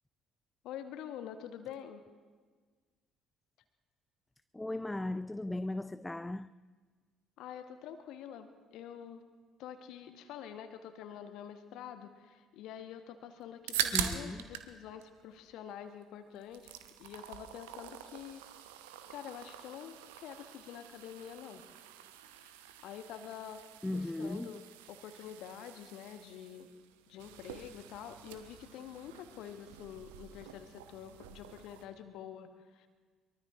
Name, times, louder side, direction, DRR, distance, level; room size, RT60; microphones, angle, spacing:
voice 1, 0.6-2.0 7.4-9.2 9.6-18.4 19.1-21.6 22.2-22.5 22.8-26.7 27.1-32.9, left 9 dB, 60° left, 1.1 m, -47 dB
voice 2, 4.5-6.5 13.9-14.5 23.8-24.6, left 2 dB, 10° left, 0.4 m, -37 dB
sound 1, 13.4-14.7 15.0-16.0 16.3-31.9, right 11 dB, 70° right, 0.8 m, -43 dB
23.5 x 23.0 x 2.5 m
figure-of-eight pair, 50°, 0 cm